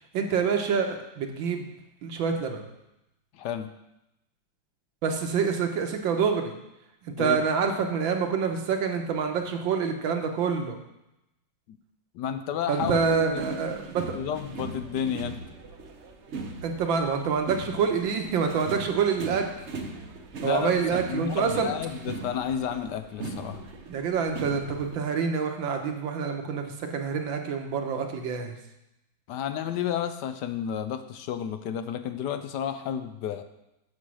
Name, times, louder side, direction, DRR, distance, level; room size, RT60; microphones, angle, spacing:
voice 1, 0.1-1.7 2.0-2.6 5.0-6.5 7.1-10.8 12.7-14.2 16.6-19.4 20.4-21.7 23.9-28.6, right 6 dB, 75° right, 4 dB, 1.7 m, -27 dB
voice 2, 3.3-3.7 7.2-7.4 11.7-11.8 12.1-13.6 14.1-15.4 20.4-23.6 29.3-33.4, left 9 dB, 70° left, 9 dB, 1.1 m, -31 dB
sound 1, 12.8-24.9, right 3 dB, 50° right, 0.8 m, -39 dB
7.3 x 6.7 x 6.2 m, 0.88 s
omnidirectional pair, 2.2 m